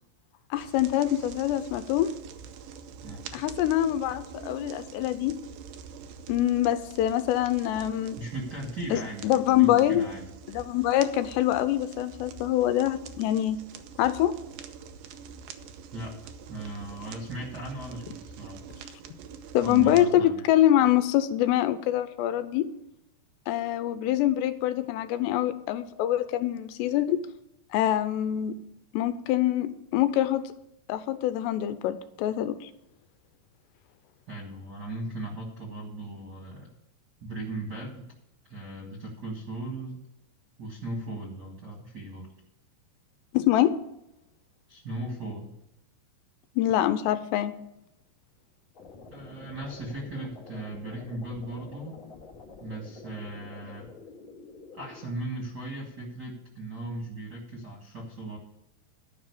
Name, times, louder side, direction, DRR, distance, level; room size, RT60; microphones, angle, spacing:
voice 1, 0.5-2.1 3.3-5.4 6.3-8.2 8.9-10.1 10.5-13.6 14.0-14.3 19.5-22.7 23.5-27.2 27.7-28.5 28.9-30.4 30.9-32.7 43.3-43.7 46.6-47.5, left 12 dB, 85° left, 11 dB, 2.7 m, -25 dB
sound 1, 0.6-20.1, right 6 dB, 85° right, 1.9 m, -45 dB
voice 2, 8.2-10.2 15.9-16.2 16.5-18.6 19.6-20.4 34.3-36.7 37.2-38.0 38.5-40.0 40.6-42.3 44.7-45.6 49.1-52.0 52.6-53.9 54.7-58.4, right 2 dB, 40° right, -4 dB, 1.4 m, -37 dB
sound 2, 48.7-55.0, left 4 dB, 60° left, 1.2 m, -48 dB
12.0 x 5.4 x 8.2 m, 0.85 s
omnidirectional pair, 5.0 m